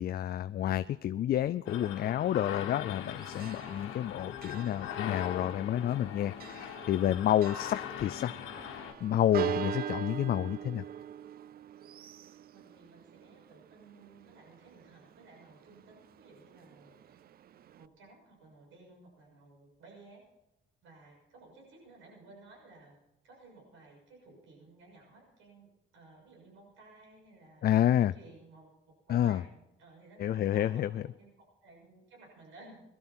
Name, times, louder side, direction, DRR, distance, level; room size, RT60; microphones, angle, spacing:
voice 1, 0.0-8.7 9.0-10.8 27.6-28.1 29.1-29.4 30.2-30.9, left 11 dB, 50° left, 13 dB, 0.4 m, -29 dB
sound 1, 1.7-8.9, left 9 dB, 85° left, 1.3 m, -41 dB
Church bell, 2.8-17.9, right 10 dB, 50° right, 0.4 m, -43 dB
voice 2, 12.5-17.2 17.7-20.2 20.8-23.0 23.2-25.7 25.9-27.7 28.0-32.8, right 2 dB, 80° right, -1 dB, 6.6 m, -56 dB
18.5 x 12.5 x 4.4 m, 0.89 s
cardioid pair, 90°, 20 cm